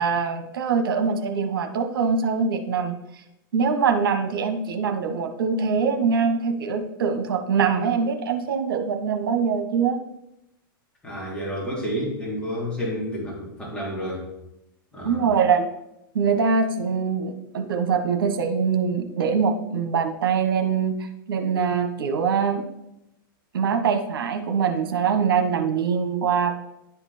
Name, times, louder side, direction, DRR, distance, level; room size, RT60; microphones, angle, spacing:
voice 1, 0.0-3.0 3.5-10.0 15.0-15.7 16.1-21.0 21.3-22.6 23.5-26.5, right 6 dB, 75° right, 7 dB, 1.1 m, -23 dB
voice 2, 11.0-14.3 14.9-15.2, equal, 10° left, -6 dB, 3.3 m, -30 dB
11.0 x 4.3 x 4.2 m, 0.87 s
hypercardioid pair, 120°, 12 cm